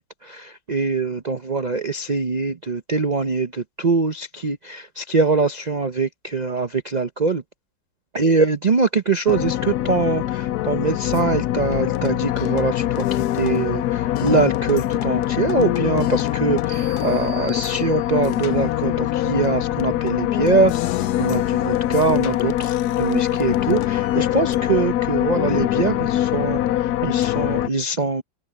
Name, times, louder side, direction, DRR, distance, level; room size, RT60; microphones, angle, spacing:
voice 1, 0.0-7.4 8.1-28.2, right 4 dB, 85° right, 0.3 m, -23 dB
sound 1, 9.3-27.7, left 13 dB, 70° left, 1.0 m, -23 dB
sound 2, 16.7-18.5, right 10 dB, 30° right, 1.6 m, -42 dB
omnidirectional pair, 2.0 m